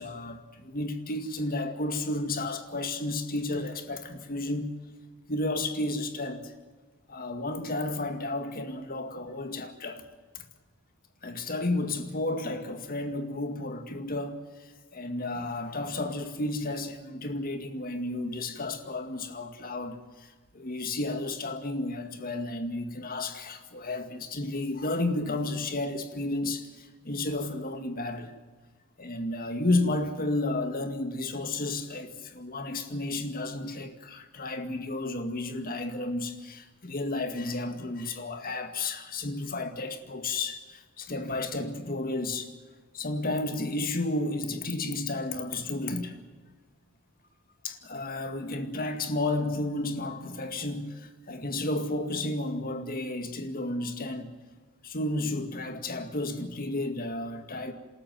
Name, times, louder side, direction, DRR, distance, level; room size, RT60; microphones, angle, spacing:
voice 1, 0.0-4.7 5.3-6.5 7.1-10.0 10.3-10.4 11.2-28.3 29.0-42.5 42.9-46.2 47.6-54.3 54.8-57.7, left 2 dB, 45° left, 2.1 m, -32 dB
28.0 x 13.5 x 9.3 m
head